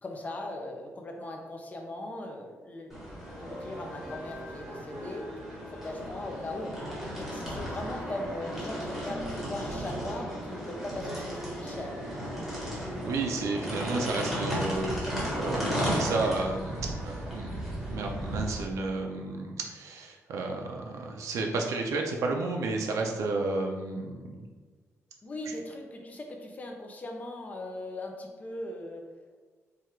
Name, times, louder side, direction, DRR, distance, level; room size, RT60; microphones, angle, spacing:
voice 1, 0.0-3.0 3.4-5.3 5.7-12.0 25.2-29.1, left 1 dB, 30° left, 2 dB, 0.6 m, -39 dB
sound 1, 2.9-18.6, equal, 5° right, 1.3 m, -35 dB
voice 2, 13.0-24.4, right 3 dB, 75° right, 1 dB, 0.5 m, -32 dB
4.7 x 2.4 x 4.4 m, 1.4 s
wide cardioid pair, 170°, 5 cm